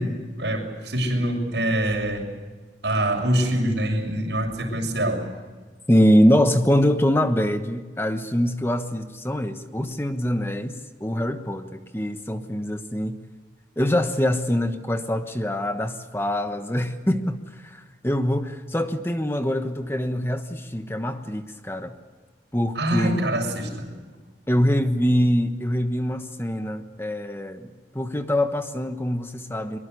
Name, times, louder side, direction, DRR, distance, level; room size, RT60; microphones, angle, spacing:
voice 1, 0.0-2.3 2.8-5.2 22.8-23.9, right 1 dB, 75° right, 2 dB, 6.9 m, -25 dB
voice 2, 5.9-13.2 13.8-21.9 22.5-23.2 24.5-27.7 27.9-29.8, equal, 15° left, 7 dB, 1.2 m, -24 dB
23.5 x 23.0 x 8.2 m, 1.4 s
head